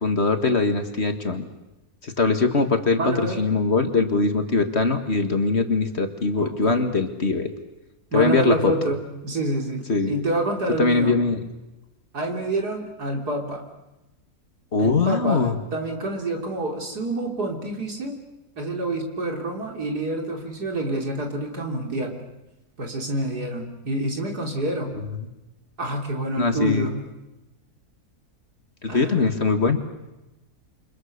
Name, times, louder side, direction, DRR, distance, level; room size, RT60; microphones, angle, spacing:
voice 1, 0.0-1.5 2.0-7.5 8.1-8.7 9.9-10.1 10.8-11.4 14.7-15.6 24.9-25.3 26.4-26.9 28.8-29.8, left 3 dB, 40° left, 7 dB, 1.9 m, -22 dB
voice 2, 3.0-3.4 6.4-6.9 8.1-9.0 9.2-11.2 12.1-13.6 14.8-15.5 15.7-18.2 18.6-22.2 22.8-24.9 25.8-27.0 28.9-29.2, right 1 dB, 75° right, 2 dB, 4.0 m, -27 dB
29.0 x 25.0 x 6.7 m, 0.99 s
omnidirectional pair, 1.7 m